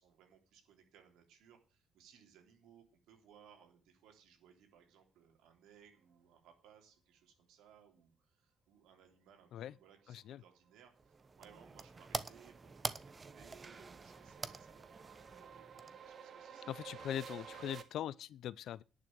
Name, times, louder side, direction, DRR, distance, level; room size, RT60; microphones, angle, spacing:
voice 1, 0.0-17.2, right 8 dB, 85° right, 3.5 m, -64 dB
voice 2, 10.1-10.4 16.7-18.8, left 11 dB, 75° left, 0.6 m, -41 dB
sound 1, 10.9-16.3, right 3 dB, 30° right, 1.0 m, -46 dB
sound 2, 11.2-17.8, right 7 dB, 55° right, 1.5 m, -53 dB
11.0 x 6.5 x 8.9 m
cardioid pair, 90°, 0 cm